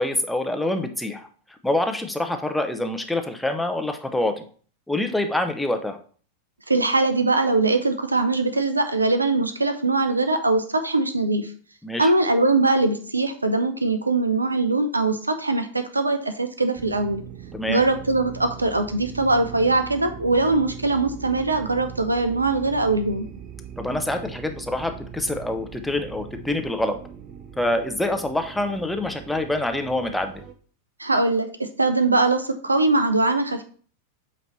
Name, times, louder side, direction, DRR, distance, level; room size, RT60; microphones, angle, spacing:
voice 1, 0.0-4.5 4.9-6.0 11.8-12.1 17.5-17.8 23.8-27.0 27.6-30.4, left 1 dB, 5° left, 5 dB, 0.8 m, -26 dB
voice 2, 6.7-11.5 12.0-17.2 17.7-23.3 31.0-33.6, right 2 dB, 80° right, 9 dB, 0.7 m, -22 dB
sound 1, 16.7-30.5, right 9 dB, 35° right, 0.7 m, -40 dB
8.0 x 3.3 x 4.2 m, 0.44 s
figure-of-eight pair, 90°, 0 cm